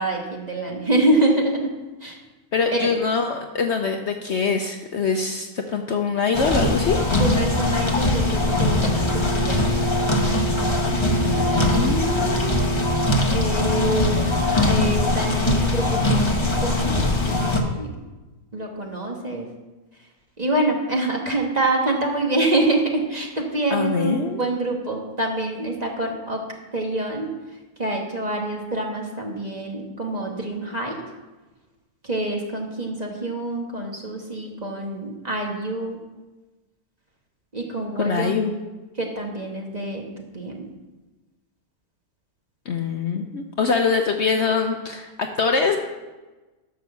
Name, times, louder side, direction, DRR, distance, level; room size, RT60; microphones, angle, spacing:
voice 1, 0.0-1.7 2.0-2.2 2.7-2.9 7.2-9.7 13.3-17.9 18.5-19.5 20.4-26.4 26.7-27.3 27.8-31.0 32.0-36.0 37.5-38.4 39.0-40.7, right 2 dB, 25° right, 0 dB, 1.5 m, -26 dB
voice 2, 2.5-7.0 11.2-12.7 23.7-24.4 38.0-38.5 42.7-45.1 45.4-45.8, left 5 dB, 55° left, 4 dB, 0.9 m, -23 dB
sound 1, 6.3-17.6, left 1 dB, 20° left, 1.0 m, -21 dB
11.0 x 6.3 x 6.9 m, 1.2 s
omnidirectional pair, 1.6 m